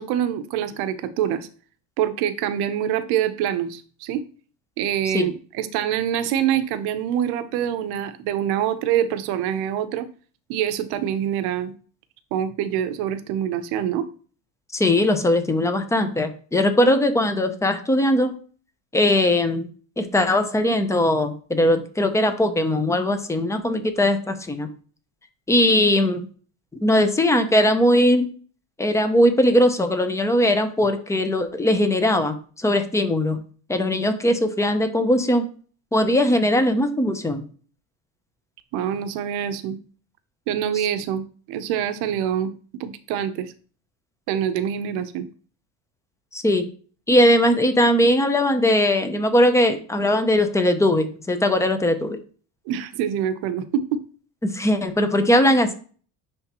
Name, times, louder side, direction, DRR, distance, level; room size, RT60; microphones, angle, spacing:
voice 1, 0.0-1.5 2.0-4.2 4.8-10.1 10.5-11.7 12.3-14.1 38.7-39.8 40.5-42.5 42.8-43.5 44.3-45.3 52.7-54.0, right 9 dB, 65° right, 11 dB, 0.8 m, -25 dB
voice 2, 14.7-18.3 18.9-19.7 20.0-24.7 25.5-26.3 26.8-28.3 28.8-33.4 33.7-35.5 35.9-37.4 46.3-46.7 47.1-52.2 54.4-55.7, left 1 dB, 5° left, 8 dB, 0.5 m, -20 dB
9.9 x 3.4 x 2.9 m, 0.41 s
cardioid pair, 135°, 42 cm